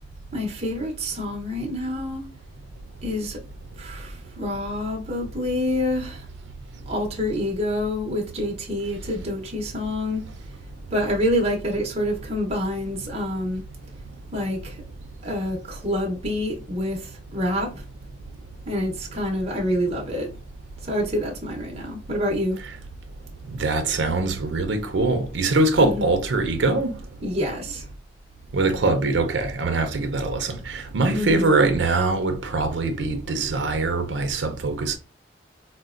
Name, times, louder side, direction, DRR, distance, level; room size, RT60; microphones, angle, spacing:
voice 1, 0.3-2.3 3.0-3.4 3.8-6.2 6.9-10.2 10.9-13.6 14.3-14.8 15.2-17.8 18.7-20.3 20.8-22.6 25.8-26.1 27.2-27.9 31.1-31.5, left 1 dB, 35° right, 0.8 m, -27 dB
voice 2, 23.6-26.9 28.5-35.0, right 3 dB, 85° right, 0.5 m, -23 dB
4.1 x 2.1 x 2.4 m
head